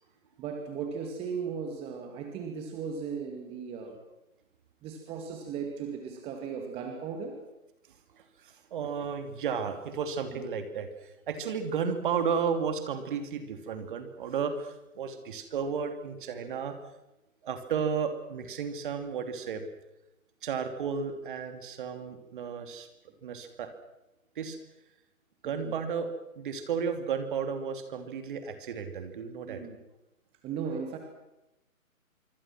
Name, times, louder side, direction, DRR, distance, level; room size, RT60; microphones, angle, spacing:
voice 1, 0.4-4.0 4.8-7.4 10.3-10.4 25.4-25.8 29.5-29.8 30.4-31.0, right 6 dB, 15° right, 4 dB, 2.1 m, -37 dB
voice 2, 8.4-16.8 17.4-19.7 20.4-22.9 23.2-23.7 24.4-24.6 25.4-26.1 26.3-29.6 30.6-30.7, right 6 dB, 35° right, 7 dB, 3.0 m, -33 dB
25.5 x 25.0 x 6.1 m, 0.92 s
figure-of-eight pair, 145°, 42 cm